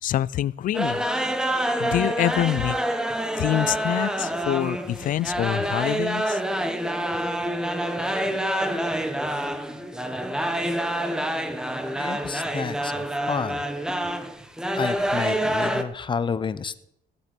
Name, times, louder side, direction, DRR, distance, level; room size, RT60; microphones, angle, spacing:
voice 1, 0.0-1.0 1.8-2.8 3.4-6.4, left 13 dB, 55° left, 22 dB, 0.4 m, -25 dB
sound 1, 0.7-15.8, right 1 dB, 5° right, 1.1 m, -27 dB
voice 2, 12.0-13.7 14.8-16.8, left 6 dB, 30° left, 14 dB, 0.8 m, -30 dB
17.0 x 8.0 x 6.1 m, 0.77 s
cardioid pair, 110°, 17 cm